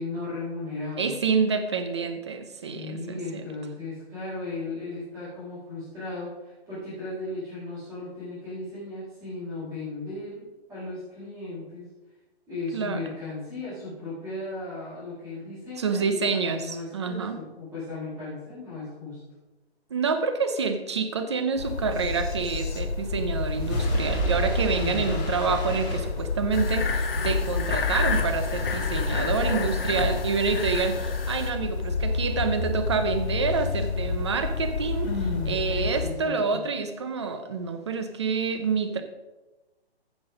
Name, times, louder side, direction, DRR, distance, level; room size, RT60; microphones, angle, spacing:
voice 1, 0.0-1.1 2.7-10.4 10.7-11.9 12.5-19.2 24.8-25.1 35.0-36.6, left 2 dB, 5° right, -14 dB, 4.2 m, -36 dB
voice 2, 1.0-3.5 12.7-13.0 15.4-15.5 15.8-17.4 19.9-35.1 35.5-39.0, right 5 dB, 25° right, 8 dB, 0.8 m, -28 dB
sound 1, 21.6-36.1, left 4 dB, 90° left, 2.4 m, -30 dB
sound 2, 23.1-26.8, equal, 15° left, 1.9 m, -30 dB
sound 3, 26.5-31.5, left 4 dB, 60° left, 1.9 m, -30 dB
15.0 x 6.1 x 5.1 m, 1.1 s
hypercardioid pair, 175°, 32 cm